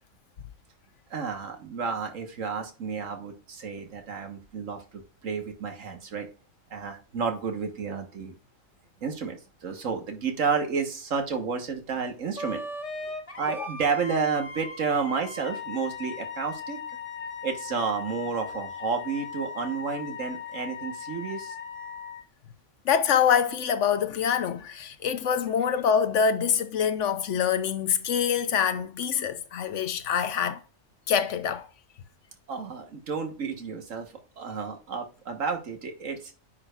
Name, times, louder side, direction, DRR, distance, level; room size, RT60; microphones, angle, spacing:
voice 1, 1.1-6.3 6.7-8.3 9.0-12.6 13.4-16.8 17.4-21.6 32.5-36.3, right 5 dB, 70° right, 1.7 m, -31 dB
Wind instrument woodwind instrument, 12.4-22.2, left 4 dB, 25° left, 1.1 m, -38 dB
voice 2, 22.8-30.6 31.1-31.7, left 7 dB, 65° left, 1.0 m, -25 dB
9.5 x 4.9 x 2.4 m
omnidirectional pair, 1.4 m